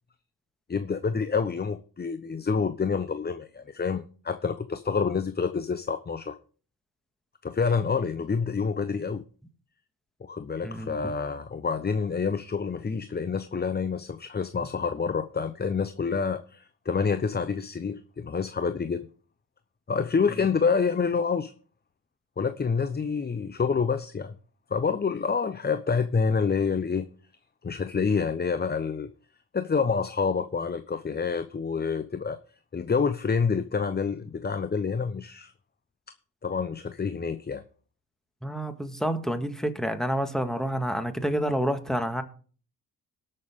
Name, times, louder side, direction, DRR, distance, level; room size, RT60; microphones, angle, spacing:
voice 1, 0.7-6.4 7.4-9.2 10.2-19.1 19.9-21.5 22.4-24.4 24.7-27.1 27.6-29.1 29.5-32.4 32.7-35.5 36.4-37.6, left 5 dB, 25° left, 11 dB, 0.8 m, -27 dB
voice 2, 10.6-11.0 38.4-42.2, equal, ahead, 7 dB, 1.7 m, -28 dB
18.5 x 6.6 x 3.7 m, 0.40 s
cardioid pair, 75°, 38 cm